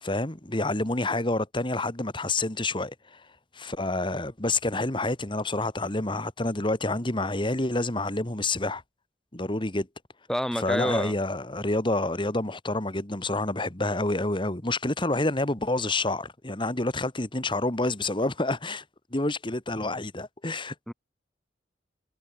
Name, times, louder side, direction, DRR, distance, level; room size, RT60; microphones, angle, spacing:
voice 1, 0.0-3.2 3.5-8.8 9.3-9.9 10.6-18.8 19.1-20.7, left 2 dB, 30° left, 2.1 m, -28 dB
voice 2, 10.3-11.2 20.9-21.0, equal, 5° left, 4.1 m, -28 dB
head